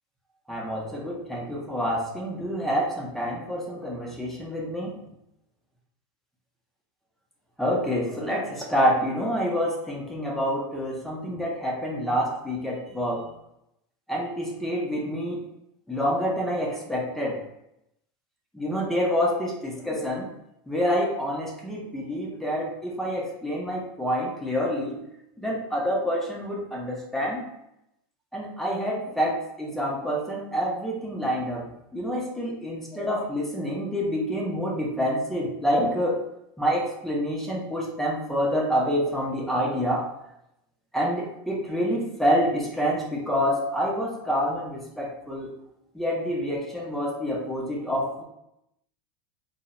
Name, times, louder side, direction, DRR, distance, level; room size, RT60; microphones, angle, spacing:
voice 1, 0.5-5.0 7.6-13.3 14.1-15.4 15.9-17.4 18.5-20.3 20.7-25.0 25.4-27.4 28.3-36.2 36.6-40.1 40.9-45.5 45.9-48.2, equal, ahead, -3 dB, 0.5 m, -27 dB
2.1 x 2.0 x 3.6 m, 0.81 s
supercardioid pair, 140°, 12 cm